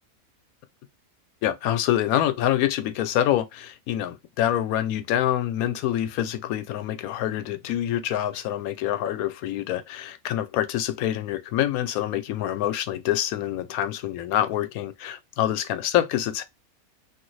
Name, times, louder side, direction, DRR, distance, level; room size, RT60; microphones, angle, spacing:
voice 1, 1.4-16.4, left 12 dB, 85° left, 1.0 m, -26 dB
3.2 x 2.4 x 3.1 m
omnidirectional pair, 1.5 m